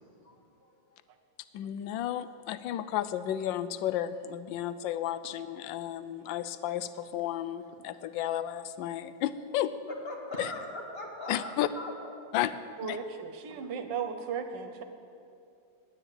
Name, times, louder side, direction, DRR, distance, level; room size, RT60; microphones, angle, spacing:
voice 1, 0.0-1.0 9.9-11.9 13.5-13.6, left 1 dB, 35° left, 0 dB, 1.9 m, -41 dB
voice 2, 1.5-9.7 10.4-10.5 11.3-11.7 12.3-12.5 12.8-13.0, left 12 dB, 85° left, 13 dB, 1.3 m, -33 dB
voice 3, 12.8-14.8, right 6 dB, 75° right, 7 dB, 1.6 m, -36 dB
9.9 x 9.7 x 8.7 m, 2.5 s
omnidirectional pair, 2.0 m